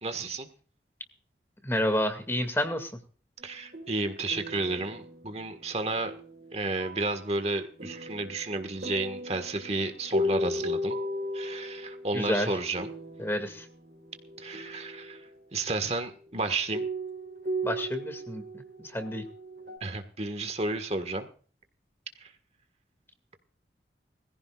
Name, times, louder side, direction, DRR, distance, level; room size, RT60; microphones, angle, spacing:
voice 1, 0.0-0.5 3.4-6.1 6.5-11.0 11.3-12.9 14.4-16.8 19.8-21.3 22.2-22.3, right 2 dB, 35° right, 8 dB, 1.6 m, -32 dB
voice 2, 1.6-3.0 12.1-12.6 13.2-13.7 17.6-18.4 18.8-19.2, left 1 dB, 15° left, 8 dB, 2.2 m, -29 dB
sound 1, 3.4-15.4 16.3-16.4 16.7-19.8, equal, 60° right, 3.6 m, -37 dB
22.0 x 15.5 x 2.4 m, 0.42 s
head